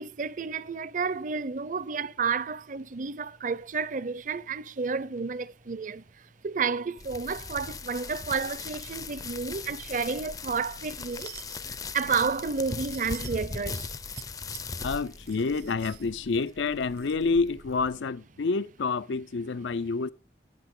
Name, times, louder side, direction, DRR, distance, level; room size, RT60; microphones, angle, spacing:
voice 1, 0.0-6.0 6.4-11.3 11.9-13.9, right 5 dB, 45° right, 0.6 m, -31 dB
sound 1, 7.0-18.0, left 4 dB, 20° left, 0.5 m, -39 dB
sound 2, 10.7-11.6 12.3-13.4 13.9-14.2 14.5-17.2, right 14 dB, 70° right, 1.4 m, -50 dB
voice 2, 14.8-20.1, left 4 dB, 85° left, 0.5 m, -28 dB
12.0 x 8.8 x 3.8 m
head